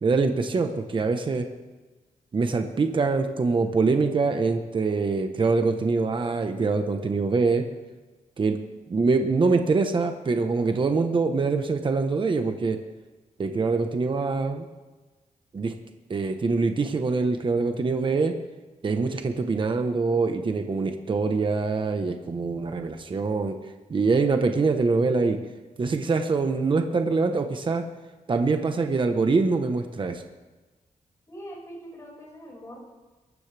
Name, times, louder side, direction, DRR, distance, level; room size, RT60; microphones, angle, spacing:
voice 1, 0.0-1.4 2.3-7.6 8.4-8.6 8.9-12.8 13.4-14.7 15.5-15.7 16.1-18.3 18.8-23.6 23.9-25.4 25.8-27.8 28.3-30.2, right 4 dB, 40° right, 6 dB, 1.2 m, -24 dB
voice 2, 31.3-32.8, equal, 25° left, -3 dB, 6.0 m, -42 dB
23.0 x 12.5 x 3.5 m, 1.2 s
wide cardioid pair, 125°, 13 cm